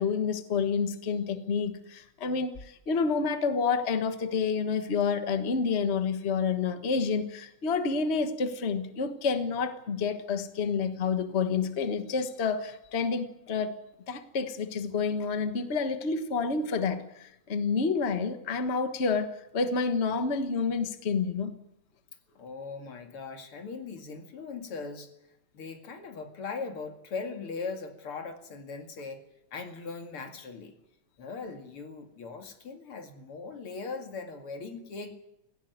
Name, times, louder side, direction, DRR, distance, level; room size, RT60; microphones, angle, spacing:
voice 1, 0.0-13.7 14.1-21.5, left 5 dB, 75° left, 9 dB, 0.6 m, -29 dB
voice 2, 22.3-25.1 25.5-29.2 29.5-30.7 31.2-35.2, left 4 dB, 45° left, 5 dB, 2.8 m, -39 dB
17.5 x 16.5 x 9.4 m, 0.85 s
omnidirectional pair, 3.7 m